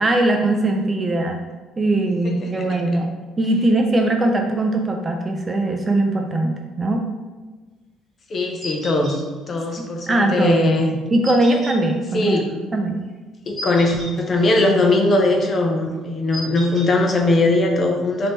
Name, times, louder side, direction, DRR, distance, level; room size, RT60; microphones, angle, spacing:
voice 1, 0.0-1.4 1.8-7.0 9.8-10.6 11.1-13.0, right 2 dB, 20° right, 3 dB, 0.3 m, -20 dB
voice 2, 8.3-10.9 12.1-12.5 13.5-18.3, left 2 dB, 30° left, 2 dB, 0.6 m, -20 dB
sound 1, 8.6-9.2 11.2-11.8 13.6-14.1 16.3-16.9, equal, ahead, 1.3 m, -33 dB
3.9 x 2.7 x 3.5 m, 1.3 s
cardioid pair, 150°, 0 cm